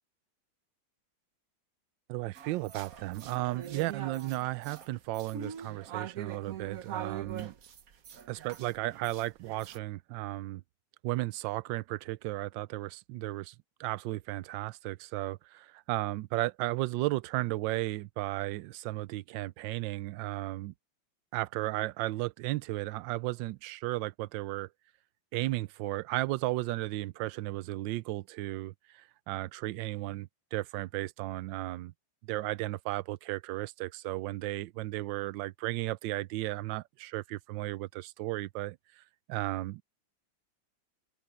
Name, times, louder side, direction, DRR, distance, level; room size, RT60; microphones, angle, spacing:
voice 1, 2.1-7.5 8.3-10.6 11.0-13.5 13.8-20.7 21.3-24.7 25.3-31.9 32.3-38.8 39.3-39.8, right 18 dB, 80° right, 1.2 m, -34 dB
sound 1, 2.4-9.8, right 8 dB, 55° right, 1.3 m, -43 dB
open air
omnidirectional pair, 2.1 m